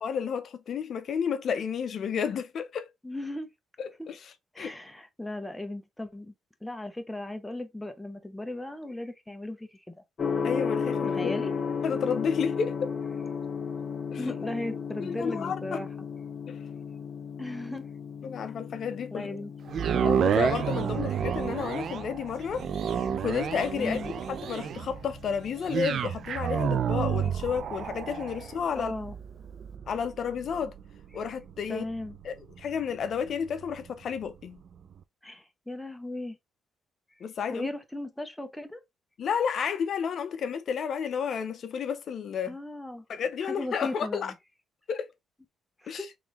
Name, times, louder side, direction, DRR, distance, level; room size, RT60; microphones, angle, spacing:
voice 1, 0.0-2.9 3.8-4.7 10.4-11.3 11.8-12.9 14.1-14.3 15.0-15.8 16.5-16.6 18.2-19.4 19.9-22.7 22.9-24.0 24.4-28.9 29.9-30.7 31.1-31.8 32.2-34.6 37.2-37.7 39.2-42.6 43.1-44.3 44.9-45.1 45.9-46.1, left 7 dB, 60° left, 0.5 m, -31 dB
voice 2, 3.0-3.5 4.0-4.1 4.5-6.3 6.6-9.9 11.1-11.5 14.2-15.9 17.4-17.8 19.1-19.5 23.8-24.1 28.7-29.1 31.7-32.2 35.2-36.4 37.5-38.8 42.5-43.0 43.4-44.3 45.8-46.1, left 1 dB, 5° left, 0.7 m, -36 dB
Gong, 10.2-28.1, left 6 dB, 45° left, 0.9 m, -36 dB
sound 1, 19.7-33.9 34.4-34.5, right 8 dB, 60° right, 0.4 m, -31 dB
3.6 x 3.1 x 3.0 m
cardioid pair, 90°, 0 cm